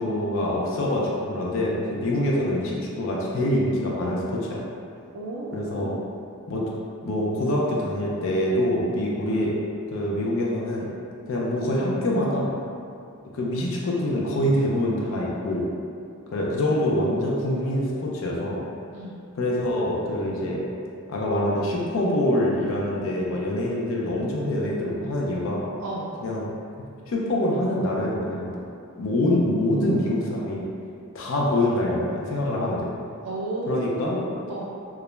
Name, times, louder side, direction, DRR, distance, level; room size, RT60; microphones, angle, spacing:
voice 1, 0.0-4.6 5.5-5.9 6.5-6.6 7.0-9.5 9.9-10.9 11.3-12.5 13.3-15.6 16.3-18.6 19.4-20.6 21.1-25.6 26.2-26.5 27.1-28.5 29.0-30.6 31.1-32.9 33.7-34.2, left 1 dB, 60° left, -4 dB, 0.4 m, -25 dB
voice 2, 5.1-6.1 18.9-19.2 25.8-26.1 33.2-34.7, right 2 dB, 85° right, -6 dB, 0.4 m, -33 dB
2.3 x 2.0 x 3.0 m, 2.5 s
head